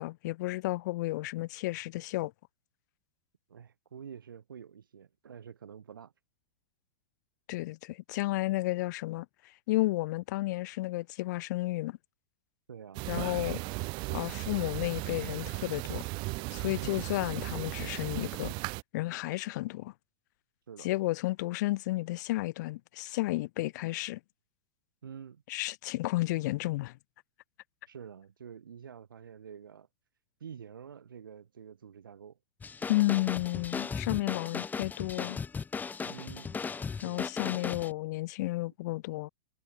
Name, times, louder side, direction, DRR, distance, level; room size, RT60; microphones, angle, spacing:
voice 1, 0.0-2.3 7.5-12.0 13.1-13.6 14.1-16.1 16.5-18.5 18.9-19.9 20.8-24.2 25.5-27.0 32.9-35.4 37.0-39.3, left 19 dB, 55° left, 5.2 m, -32 dB
voice 2, 3.5-6.1 12.7-13.3 16.8-17.1 20.7-20.9 25.0-25.4 27.9-29.9 30.4-32.4 36.0-36.6 36.9-37.3, right 7 dB, 80° right, 7.8 m, -47 dB
sound 1, 12.9-18.8, right 27 dB, 45° right, 7.1 m, -36 dB
sound 2, 32.6-37.9, left 5 dB, 15° left, 4.4 m, -37 dB
hypercardioid pair, 110°, 11 cm